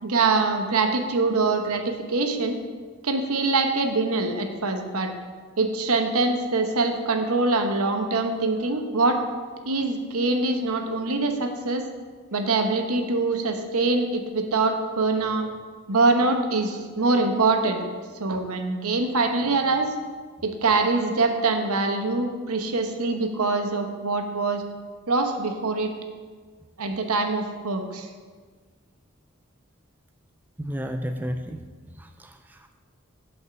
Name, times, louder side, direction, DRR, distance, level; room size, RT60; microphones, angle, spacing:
voice 1, 0.0-2.6 3.0-5.1 5.6-9.2 9.6-11.8 12.3-15.5 15.9-17.9 18.1-19.9 20.4-24.6 25.1-25.9 26.8-28.1, right 3 dB, 85° right, 5 dB, 1.0 m, -24 dB
voice 2, 30.6-31.6 32.0-32.8, equal, 10° right, 6 dB, 0.3 m, -32 dB
8.1 x 5.5 x 6.9 m, 1.5 s
head